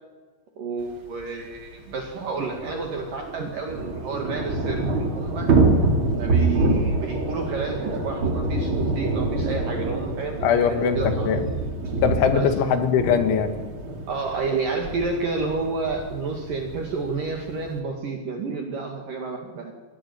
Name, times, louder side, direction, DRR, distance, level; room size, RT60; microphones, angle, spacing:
voice 1, 0.6-5.5 6.1-11.3 12.3-12.5 14.1-19.7, right 4 dB, 55° right, 3 dB, 3.2 m, -30 dB
Thunder / Rain, 1.2-1.3 1.5-1.6 1.9-17.8, right 2 dB, 35° right, 2.6 m, -26 dB
voice 2, 10.4-11.4 12.0-13.5, left 7 dB, 75° left, 8 dB, 4.5 m, -21 dB
24.0 x 17.5 x 9.3 m, 1.4 s
omnidirectional pair, 5.5 m